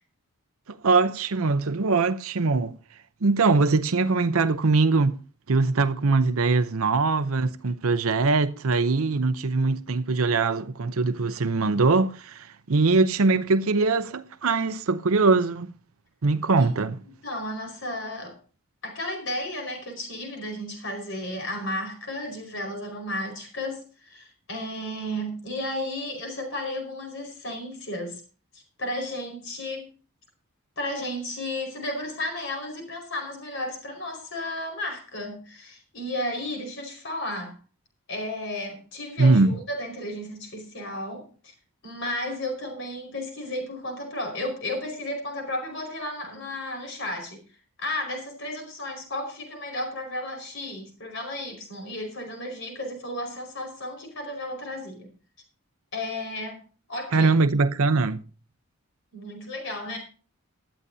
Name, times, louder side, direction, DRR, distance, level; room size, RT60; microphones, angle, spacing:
voice 1, 0.7-2.8 3.2-5.2 5.5-15.7 16.2-17.0 39.2-39.5 57.1-58.2, right 3 dB, 70° right, 0.7 m, -22 dB
voice 2, 17.2-18.4 18.8-28.2 28.5-29.9 30.8-37.5 38.1-41.5 41.8-47.4 47.8-55.1 55.9-56.6 56.9-57.3 59.1-60.0, left 1 dB, 55° left, 5.0 m, -33 dB
18.5 x 12.5 x 2.7 m
head